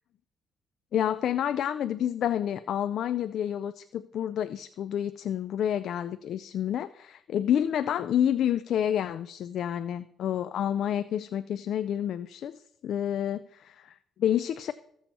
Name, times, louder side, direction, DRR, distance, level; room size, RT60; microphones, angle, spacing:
voice 1, 0.9-14.7, left 10 dB, 70° left, 13 dB, 0.4 m, -29 dB
14.5 x 7.0 x 4.3 m, 0.74 s
cardioid pair, 90°, 0 cm